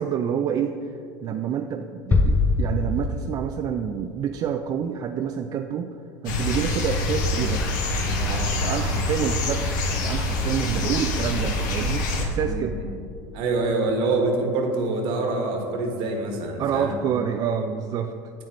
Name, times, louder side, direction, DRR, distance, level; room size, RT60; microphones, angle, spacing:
voice 1, 0.0-6.0 6.2-7.7 8.1-12.8 16.6-18.1, right 8 dB, 40° right, 6 dB, 0.4 m, -28 dB
sound 1, 2.1-3.7, left 3 dB, 20° left, 0.6 m, -22 dB
sound 2, 6.3-12.3, left 2 dB, 75° left, 1.2 m, -25 dB
voice 2, 12.4-12.9 13.3-16.9, right 2 dB, 60° right, 2 dB, 1.5 m, -25 dB
8.5 x 7.4 x 3.2 m, 2.6 s
hypercardioid pair, 95°, 10 cm